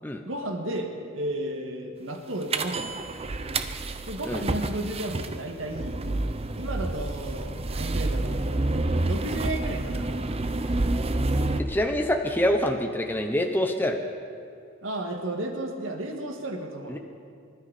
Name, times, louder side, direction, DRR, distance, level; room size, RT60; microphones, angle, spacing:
voice 1, 0.3-3.0 4.1-6.0 6.6-8.4 9.0-10.2 14.8-17.0, right 1 dB, 75° right, 3 dB, 2.0 m, -33 dB
sound 1, 2.5-11.6, right 2 dB, 30° right, 0.6 m, -28 dB
voice 2, 11.6-14.0 16.9-17.0, left 1 dB, 10° left, 4 dB, 0.8 m, -25 dB
25.5 x 13.0 x 4.2 m, 2.4 s
head